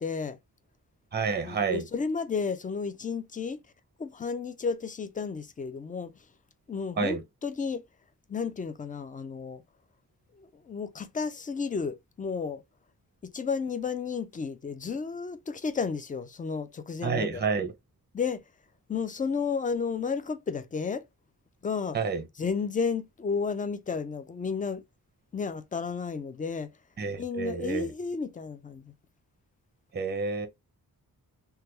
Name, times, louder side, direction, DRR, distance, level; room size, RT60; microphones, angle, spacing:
voice 1, 0.0-0.4 1.4-3.6 4.0-6.3 6.7-7.8 8.3-9.6 10.4-12.6 13.2-17.4 18.1-18.4 18.9-21.1 21.6-22.0 22.4-24.8 25.3-26.8 27.2-28.9, left 5 dB, 25° left, 0.3 m, -32 dB
voice 2, 1.1-1.8 7.0-7.2 17.0-17.7 21.9-22.2 27.0-27.9 29.9-30.5, right 5 dB, 30° right, 0.6 m, -29 dB
3.3 x 2.2 x 2.9 m
wide cardioid pair, 155°, 36 cm